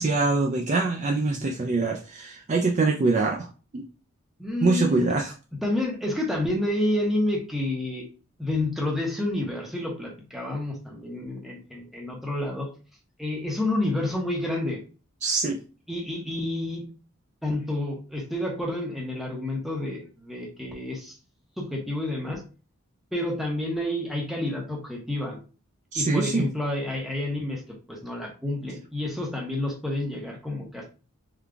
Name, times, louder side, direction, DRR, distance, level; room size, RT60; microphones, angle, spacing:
voice 1, 0.0-3.5 3.7-3.8 4.6-5.3 15.2-15.6 25.9-26.5, right 3 dB, 30° right, 1 dB, 0.3 m, -24 dB
voice 2, 4.4-5.1 5.6-8.1 8.4-12.7 13.2-14.8 15.9-16.8 17.4-21.2 21.6-22.4 23.1-25.4 25.9-27.6 27.9-30.8, left 1 dB, ahead, -1 dB, 0.8 m, -29 dB
3.7 x 2.3 x 3.3 m, 0.35 s
head